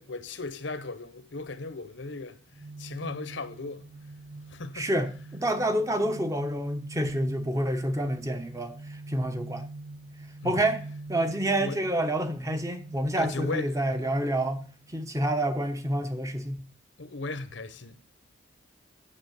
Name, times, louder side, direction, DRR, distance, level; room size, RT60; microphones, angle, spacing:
voice 1, 0.0-3.9 4.5-4.9 10.4-10.6 11.6-11.8 13.2-13.9 17.0-18.0, left 3 dB, 70° left, 1.0 m, -37 dB
sound 1, 2.5-15.6, right 2 dB, 35° right, 0.4 m, -44 dB
voice 2, 4.7-9.7 10.4-10.8 11.1-14.6 14.9-16.6, right 1 dB, 15° right, 1.0 m, -28 dB
8.8 x 7.3 x 7.2 m
head